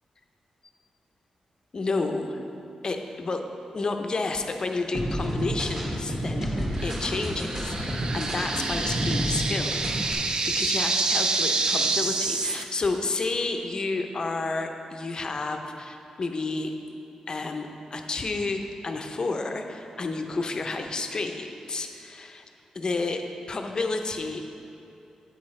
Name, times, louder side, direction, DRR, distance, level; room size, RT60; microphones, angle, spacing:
voice 1, 1.7-2.4 2.8-3.4 3.7-6.5 6.8-16.7 17.3-22.4 22.7-23.2 23.5-24.4, left 3 dB, 40° left, 5 dB, 0.5 m, -30 dB
sound 1, 4.9-9.4 9.7-10.1, equal, 25° right, 1.7 m, -29 dB
sound 2, 6.8-12.6, right 3 dB, 40° right, 0.4 m, -28 dB
8.7 x 7.9 x 3.2 m, 2.8 s
wide cardioid pair, 120°, 2 cm